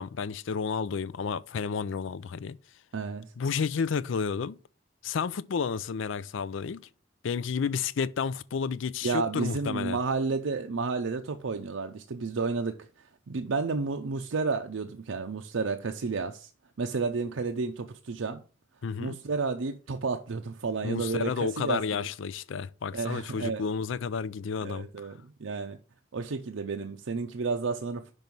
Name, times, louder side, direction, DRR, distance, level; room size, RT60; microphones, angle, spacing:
voice 1, 0.0-2.6 3.4-4.6 5.0-6.9 7.2-10.0 18.8-19.2 20.8-25.1, left 6 dB, 75° left, 0.4 m, -31 dB
voice 2, 2.9-3.3 9.0-12.9 13.3-16.5 16.8-18.4 19.0-22.1 22.9-23.6 24.6-25.8 26.1-28.1, right 4 dB, 80° right, 0.6 m, -31 dB
5.4 x 5.3 x 6.0 m
head